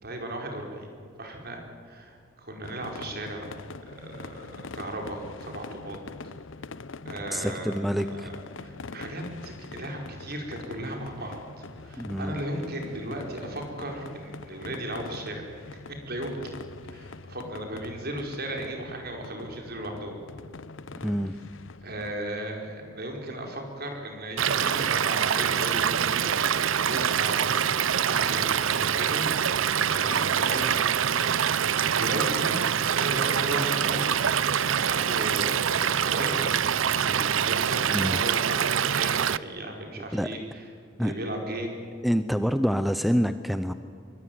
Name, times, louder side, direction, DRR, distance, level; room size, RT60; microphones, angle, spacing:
voice 1, 0.0-0.9 1.2-3.5 3.9-6.0 7.1-15.5 15.9-16.5 16.9-20.2 21.8-29.3 29.8-32.6 32.9-36.4 37.0-40.6 41.0-41.8, right 1 dB, 50° right, 2 dB, 5.2 m, -36 dB
sound 1, 2.6-22.1, left 3 dB, 65° left, 0.8 m, -43 dB
voice 2, 7.3-8.3 12.0-12.4 20.9-21.4 37.9-38.2 40.1-40.3 41.0-41.1 42.0-43.7, equal, ahead, 10 dB, 0.6 m, -26 dB
Stream / Liquid, 24.4-39.4, right 8 dB, 70° right, 0.6 m, -25 dB
24.0 x 23.5 x 9.5 m, 2.3 s
head